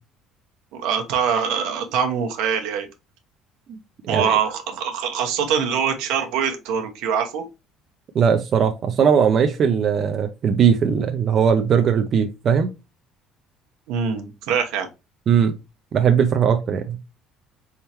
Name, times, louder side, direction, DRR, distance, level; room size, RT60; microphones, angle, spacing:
voice 1, 0.7-2.9 4.1-7.4 13.9-14.9, right 7 dB, 80° right, 4 dB, 1.0 m, -23 dB
voice 2, 8.1-12.7 15.3-15.6 15.9-17.0, right 7 dB, 40° right, 6 dB, 0.5 m, -19 dB
4.3 x 3.6 x 2.9 m, 0.26 s
cardioid pair, 150°, 0 cm